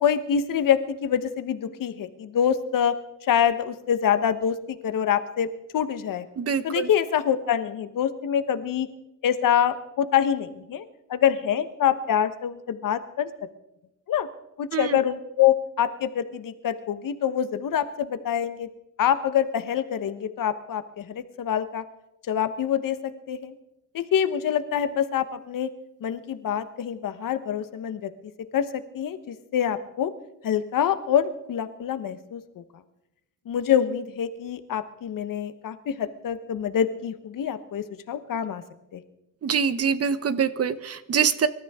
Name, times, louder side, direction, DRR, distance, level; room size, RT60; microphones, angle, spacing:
voice 1, 0.0-2.9 3.3-4.5 4.8-5.5 5.7-6.2 6.6-8.9 9.2-10.8 11.1-13.3 14.1-14.3 14.6-18.7 19.0-21.8 22.3-23.0 23.3-23.5 23.9-25.7 26.0-28.1 28.5-28.6 28.9-30.1 30.4-32.4 33.5-38.6 38.9-39.0, left 9 dB, 70° left, 12 dB, 1.1 m, -25 dB
voice 2, 6.4-6.9 14.7-15.0 39.4-41.5, right 7 dB, 45° right, 13 dB, 0.9 m, -24 dB
25.5 x 13.0 x 3.6 m, 0.92 s
cardioid pair, 130°, 34 cm